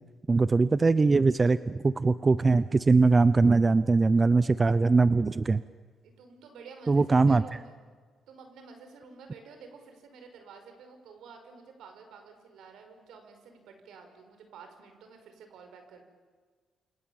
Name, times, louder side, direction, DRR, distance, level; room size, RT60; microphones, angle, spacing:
voice 1, 0.3-5.6 6.9-7.4, right 3 dB, 30° right, 14 dB, 0.8 m, -22 dB
voice 2, 6.0-7.8 8.3-16.1, right 5 dB, 80° right, 6 dB, 5.6 m, -50 dB
29.5 x 25.5 x 7.3 m, 1.5 s
cardioid pair, 90°, 0 cm